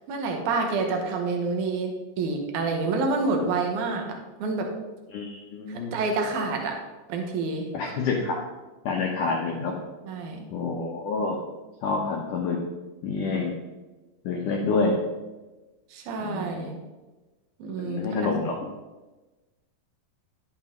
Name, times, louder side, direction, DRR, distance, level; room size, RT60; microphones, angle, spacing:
voice 1, 0.1-4.7 5.7-6.8 7.1-7.7 10.0-10.5 15.9-16.8 17.6-18.3, right 3 dB, 65° right, 2 dB, 2.0 m, -28 dB
voice 2, 5.1-5.9 7.7-8.4 8.8-9.7 10.5-11.4 11.8-12.6 13.0-13.5 14.2-15.0 16.2-16.8 17.8-18.7, left 4 dB, 85° left, -1 dB, 1.8 m, -28 dB
11.5 x 7.9 x 3.8 m, 1.2 s
omnidirectional pair, 5.3 m